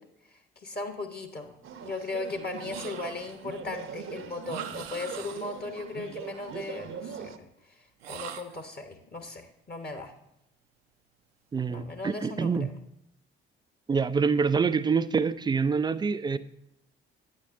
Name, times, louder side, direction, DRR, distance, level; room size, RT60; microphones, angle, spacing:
voice 1, 0.6-1.5 1.8-7.5 7.8-10.1 11.7-12.5, left 3 dB, 30° left, 5 dB, 1.1 m, -37 dB
sound 1, 1.6-7.4, right 7 dB, 40° right, 0.7 m, -41 dB
sound 2, 2.7-3.5 4.4-5.7 8.0-8.7, right 10 dB, 80° right, 0.5 m, -42 dB
voice 2, 11.5-12.7 13.9-16.4, right 5 dB, 15° right, 14 dB, 0.3 m, -26 dB
8.9 x 8.4 x 2.6 m, 0.81 s
figure-of-eight pair, 45°, 31 cm